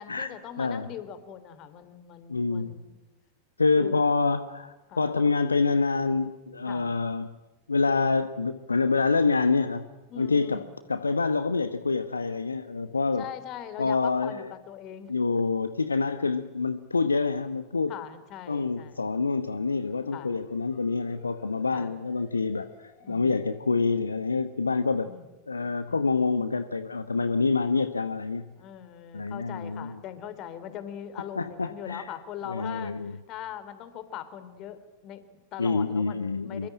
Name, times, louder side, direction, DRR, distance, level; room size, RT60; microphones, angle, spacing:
voice 1, 0.0-3.0 3.8-4.0 4.9-5.3 6.7-6.9 10.1-10.6 13.2-15.1 17.9-19.0 20.1-20.4 21.7-21.9 23.0-23.4 25.0-25.3 25.9-26.0 28.6-36.7, left 10 dB, 35° left, 12 dB, 3.2 m, -41 dB
voice 2, 0.6-0.9 2.3-2.7 3.6-7.3 7.7-9.9 10.2-10.6 10.9-13.2 13.8-14.5 15.1-17.9 18.5-25.1 25.5-28.5 29.1-30.0 31.4-32.0 32.4-33.1 35.6-36.7, left 4 dB, 75° left, 12 dB, 1.1 m, -26 dB
sound 1, 19.6-24.4, left 5 dB, 60° left, 6.2 m, -52 dB
26.0 x 23.5 x 8.9 m, 1.1 s
figure-of-eight pair, 90°, 0 cm